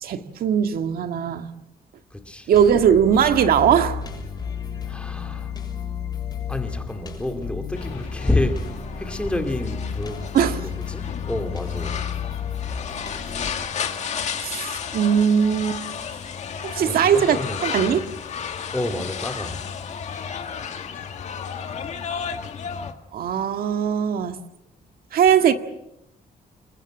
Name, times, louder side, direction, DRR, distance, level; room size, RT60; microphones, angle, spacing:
voice 1, 0.0-1.5 2.5-4.0 10.3-10.6 14.4-15.8 16.6-18.1 23.1-24.4 25.1-25.5, right 8 dB, 70° right, 1.8 m, -20 dB
voice 2, 2.1-2.5 4.9-5.5 6.5-12.0 16.8-17.9 18.7-19.6, left 1 dB, 5° left, 2.4 m, -29 dB
sound 1, 2.5-13.5, left 7 dB, 25° left, 6.7 m, -32 dB
sound 2, 7.7-22.9, left 7 dB, 45° left, 2.0 m, -33 dB
28.0 x 22.0 x 7.8 m
cardioid pair, 170°, 16 cm